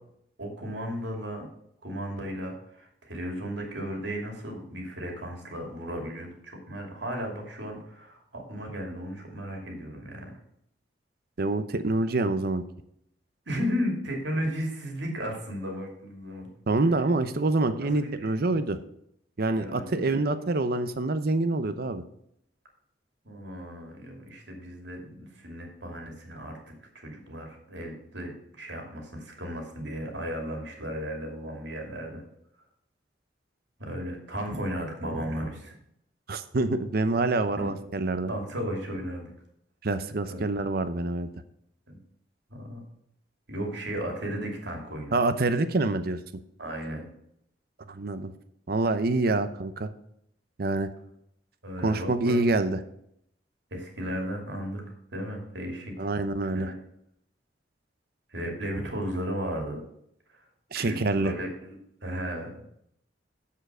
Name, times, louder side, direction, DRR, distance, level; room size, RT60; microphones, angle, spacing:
voice 1, 0.4-1.5 1.8-10.3 13.5-16.5 17.8-18.3 19.6-20.3 23.2-32.2 33.8-35.7 37.6-37.7 38.3-39.3 40.3-40.4 41.9-42.0 42.5-42.8 43.5-45.2 46.6-47.1 51.6-52.4 53.7-54.8 55.1-56.0 56.4-56.8 58.3-59.8 60.7-61.7 62.0-62.7, equal, 85° right, 2 dB, 2.6 m, -35 dB
voice 2, 11.4-12.6 16.7-18.8 19.4-22.0 36.3-38.3 39.8-41.3 45.1-46.2 47.9-48.3 48.7-49.9 50.6-50.9 51.8-52.8 56.0-56.7 60.7-61.3, right 2 dB, 60° right, 10 dB, 0.7 m, -26 dB
7.3 x 6.7 x 6.1 m, 0.73 s
head